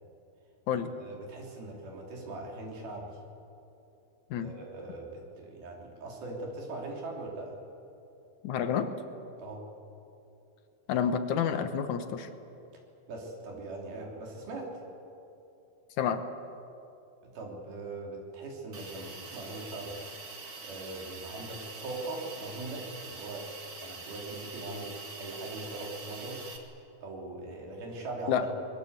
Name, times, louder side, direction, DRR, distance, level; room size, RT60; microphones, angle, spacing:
voice 1, 1.0-3.2 4.4-7.6 9.4-9.7 13.1-14.7 17.2-20.0 20.6-23.5 23.8-24.9 25.2-26.5 27.0-28.5, right 2 dB, 80° right, 0 dB, 5.0 m, -40 dB
voice 2, 8.4-8.9 10.9-12.3 16.0-16.2 28.3-28.5, left 8 dB, 65° left, 9 dB, 2.2 m, -29 dB
Hiss, 18.7-26.6, right 4 dB, 40° right, 2.5 m, -44 dB
26.0 x 22.0 x 8.1 m, 2.8 s
omnidirectional pair, 4.2 m